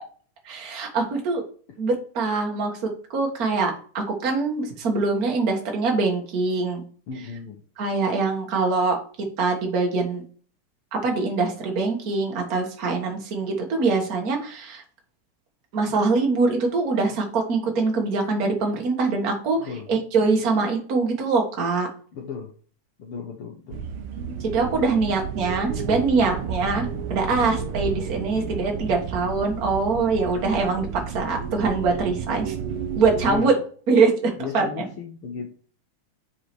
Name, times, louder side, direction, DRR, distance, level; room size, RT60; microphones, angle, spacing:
voice 1, 0.4-1.4 1.8-2.8 3.1-6.8 7.8-9.0 9.4-10.2 10.9-14.8 15.7-21.9 24.4-32.5 33.0-33.5 33.9-34.8, right 4 dB, 45° right, 2 dB, 1.3 m, -23 dB
voice 2, 7.1-7.6 19.6-19.9 22.1-22.5 23.0-23.8 27.1-27.3 33.3-33.6 34.4-35.5, left 6 dB, 65° left, 1 dB, 1.4 m, -34 dB
sound 1, 23.7-33.3, right 7 dB, 90° right, 1.2 m, -31 dB
5.5 x 4.9 x 4.4 m, 0.43 s
omnidirectional pair, 3.6 m